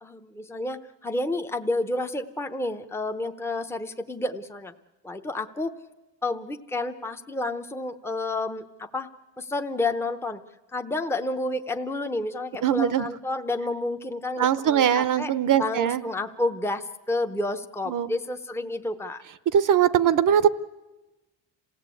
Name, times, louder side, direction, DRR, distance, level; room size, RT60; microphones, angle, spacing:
voice 1, 0.0-4.7 5.0-5.8 6.2-9.1 9.4-10.4 10.7-15.3 15.6-19.2, left 2 dB, 5° left, 6 dB, 0.8 m, -30 dB
voice 2, 12.6-13.1 14.4-16.0 17.9-18.1 19.5-20.5, right 9 dB, 45° right, 15 dB, 0.8 m, -21 dB
27.5 x 16.5 x 8.4 m, 1.1 s
cardioid pair, 125°, 45 cm